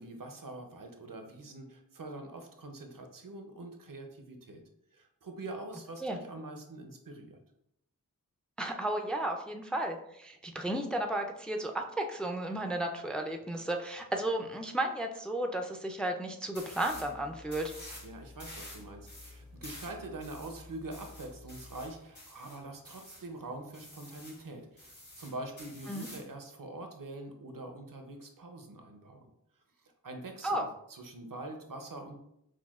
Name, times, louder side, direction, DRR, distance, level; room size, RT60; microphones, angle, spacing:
voice 1, 0.0-4.6 4.9-7.4 18.0-29.3 29.8-32.2, right 2 dB, 70° right, 4 dB, 0.6 m, -44 dB
voice 2, 8.6-17.7 25.9-26.1 30.4-30.7, right 1 dB, 5° left, 4 dB, 0.4 m, -33 dB
sound 1, 16.5-17.1 17.5-18.1 18.4-23.3 23.7-24.4 24.8-26.3, left 1 dB, 55° left, 1.5 m, -49 dB
sound 2, 16.9-21.9, left 3 dB, 85° left, 0.7 m, -53 dB
6.0 x 2.2 x 2.4 m, 0.77 s
wide cardioid pair, 45°, 35 cm